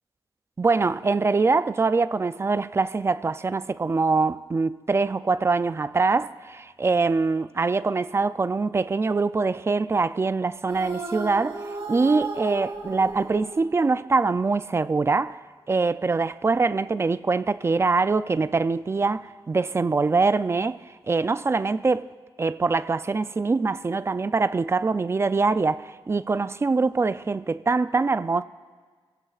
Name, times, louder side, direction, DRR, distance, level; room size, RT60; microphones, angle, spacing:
voice 1, 0.6-15.4 15.7-22.1 22.4-28.4, right 4 dB, 25° right, 0.4 m, -24 dB
sound 1, 10.7-14.1, right 3 dB, 70° right, 3.8 m, -34 dB
26.5 x 16.5 x 2.4 m
wide cardioid pair, 145°, 10 cm